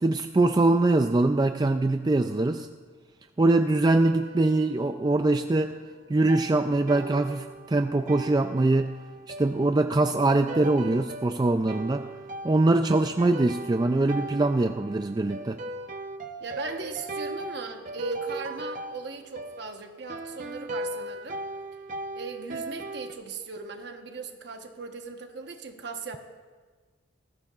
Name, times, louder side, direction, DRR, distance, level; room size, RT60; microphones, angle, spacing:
voice 1, 0.0-2.7 3.4-5.7 6.1-8.9 9.4-12.1 12.4-15.6, right 2 dB, 20° right, 7 dB, 0.3 m, -23 dB
sound 1, 3.9-5.4 6.3-23.1, right 1 dB, 40° right, 0.7 m, -39 dB
voice 2, 16.4-21.4 22.1-26.2, right 4 dB, 55° right, 4 dB, 1.2 m, -37 dB
19.5 x 14.5 x 2.5 m, 1.5 s
head